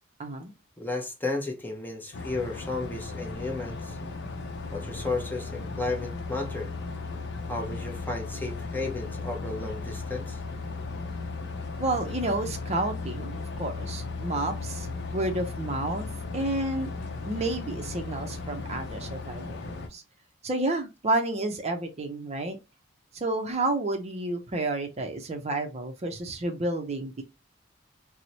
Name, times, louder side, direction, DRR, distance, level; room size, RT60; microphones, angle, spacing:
voice 1, 0.2-0.5 11.8-14.9 15.1-16.1 16.3-16.9 17.3-20.0 20.4-22.6 23.1-27.2, right 2 dB, 35° right, 0.5 m, -30 dB
voice 2, 0.8-4.0 4.7-6.7 7.5-10.4, left 2 dB, 10° left, 0.6 m, -33 dB
sound 1, 2.1-19.9, left 3 dB, 60° left, 0.6 m, -36 dB
3.0 x 2.0 x 3.9 m
head